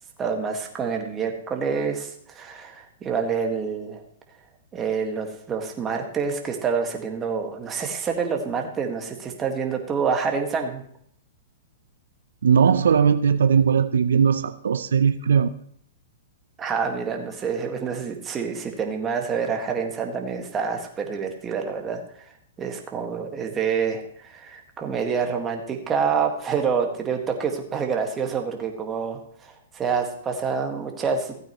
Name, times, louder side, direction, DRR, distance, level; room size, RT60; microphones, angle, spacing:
voice 1, 0.2-4.0 4.7-10.8 16.6-22.3 22.6-31.4, right 6 dB, 20° right, 3 dB, 1.7 m, -27 dB
voice 2, 12.4-15.5, right 7 dB, 80° right, 12 dB, 0.5 m, -19 dB
15.5 x 8.7 x 3.1 m, 0.64 s
hypercardioid pair, 130°, 0 cm